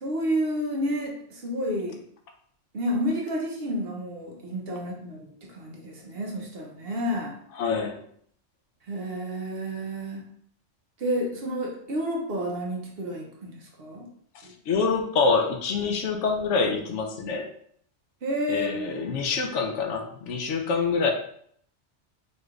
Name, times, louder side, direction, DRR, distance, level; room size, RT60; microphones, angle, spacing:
voice 1, 0.0-2.0 2.7-7.4 8.9-10.3 11.0-14.1 14.4-14.5 18.2-18.9, equal, 60° right, 0 dB, 0.9 m, -30 dB
voice 2, 7.6-8.0 14.7-17.5 18.5-21.1, left 4 dB, 80° left, 4 dB, 0.9 m, -26 dB
4.3 x 3.2 x 2.3 m, 0.65 s
omnidirectional pair, 1.2 m